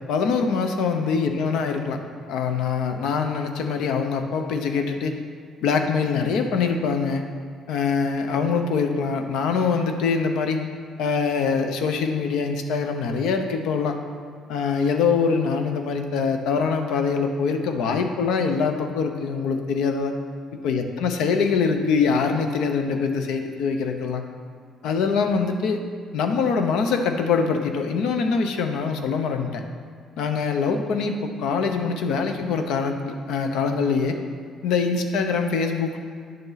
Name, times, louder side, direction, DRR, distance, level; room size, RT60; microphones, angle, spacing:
voice 1, 0.1-2.0 2.3-5.2 5.6-7.2 7.7-10.7 11.0-14.0 14.5-20.1 20.6-24.2 24.8-25.8 26.1-29.6 30.2-34.2 34.6-36.0, left 5 dB, 85° left, 6 dB, 0.8 m, -24 dB
10.0 x 6.7 x 4.0 m, 2.1 s
cardioid pair, 125°, 0 cm